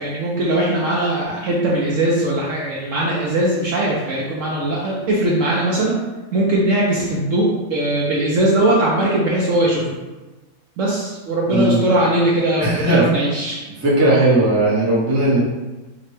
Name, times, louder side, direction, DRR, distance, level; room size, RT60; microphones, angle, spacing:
voice 1, 0.0-6.0 6.3-10.0 10.8-13.7, right 1 dB, 65° right, -4 dB, 0.8 m, -20 dB
voice 2, 11.5-11.8 12.6-13.1 13.8-15.4, right 2 dB, 15° right, -6 dB, 0.6 m, -17 dB
4.8 x 2.2 x 3.2 m, 1.2 s
omnidirectional pair, 1.7 m